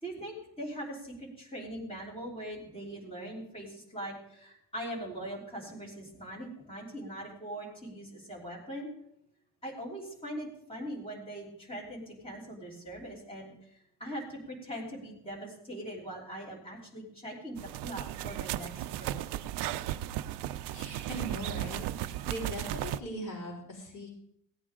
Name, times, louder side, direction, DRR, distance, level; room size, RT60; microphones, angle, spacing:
voice 1, 0.0-8.9 9.6-19.2, right 1 dB, 15° left, -4 dB, 3.3 m, -41 dB
sound 1, 17.6-23.0, right 13 dB, 70° right, 0.6 m, -35 dB
voice 2, 20.7-24.1, equal, 45° left, -5 dB, 4.6 m, -40 dB
17.0 x 9.0 x 3.7 m, 0.76 s
cardioid pair, 175°, 42 cm